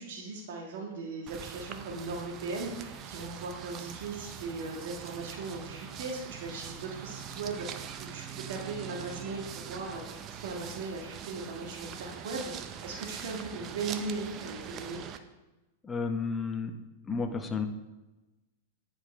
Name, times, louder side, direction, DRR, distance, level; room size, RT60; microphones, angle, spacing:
voice 1, 0.0-15.0, right 3 dB, 65° right, 0 dB, 1.5 m, -38 dB
sound 1, 1.3-15.2, right 8 dB, 30° right, 0.5 m, -43 dB
voice 2, 15.8-16.7 17.0-17.7, left 4 dB, 15° left, 6 dB, 0.8 m, -32 dB
9.7 x 5.0 x 4.2 m, 1.1 s
hypercardioid pair, 130°, 0 cm